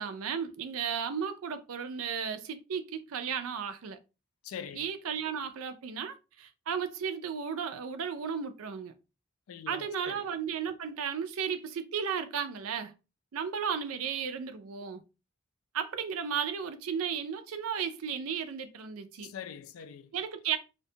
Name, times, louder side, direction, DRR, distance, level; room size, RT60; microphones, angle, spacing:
voice 1, 0.0-4.0 4.7-8.9 9.7-12.9 13.3-15.0 15.7-19.3 20.1-20.6, right 7 dB, 75° right, 0.4 m, -34 dB
voice 2, 4.4-4.9 9.5-10.3 19.2-20.1, left 8 dB, 75° left, 0.3 m, -43 dB
2.5 x 2.2 x 2.7 m
head